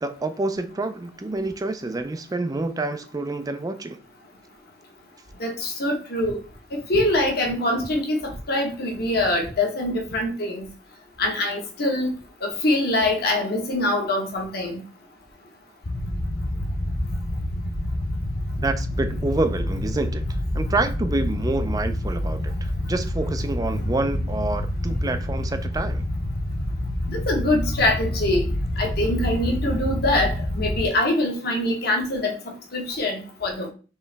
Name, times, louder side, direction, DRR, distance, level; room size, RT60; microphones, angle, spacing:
voice 1, 0.0-4.0 18.6-26.0, right 2 dB, 20° right, 0.4 m, -28 dB
voice 2, 5.4-6.4 6.7-10.6 11.2-12.1 12.4-14.8 27.1-28.4 28.8-32.3 32.7-33.7, left 1 dB, 55° left, 1.2 m, -24 dB
sound 1, 15.8-30.9, left 1 dB, 40° left, 0.6 m, -27 dB
4.4 x 3.1 x 3.3 m
head